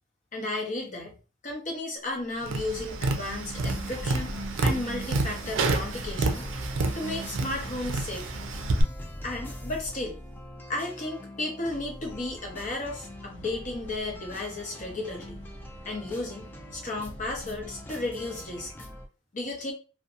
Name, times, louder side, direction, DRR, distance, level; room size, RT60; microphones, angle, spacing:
voice 1, 0.3-1.1 1.4-4.3 4.6-6.5 6.9-8.3 9.2-10.2 10.7-15.5 15.8-18.7 19.3-19.7, left 2 dB, 40° left, 0 dB, 0.8 m, -34 dB
Tap, 2.4-8.8, right 2 dB, 85° right, 0.4 m, -29 dB
sound 1, 3.5-19.1, left 1 dB, 10° left, 0.3 m, -43 dB
sound 2, 12.0-18.7, right 1 dB, 85° left, 0.7 m, -48 dB
2.7 x 2.2 x 2.4 m, 0.33 s
head